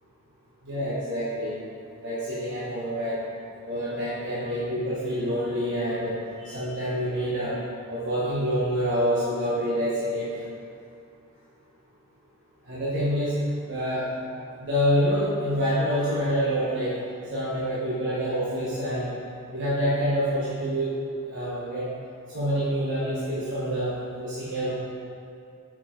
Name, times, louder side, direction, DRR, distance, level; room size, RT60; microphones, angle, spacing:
voice 1, 0.6-1.6 2.0-3.2 3.6-7.6 7.9-10.4 12.7-13.4 13.7-14.1 14.6-17.0 17.3-19.2 19.5-20.9 21.3-21.9 22.3-23.9 24.2-24.7, equal, 60° right, -9 dB, 1.2 m, -27 dB
8.7 x 4.9 x 3.8 m, 2.5 s
head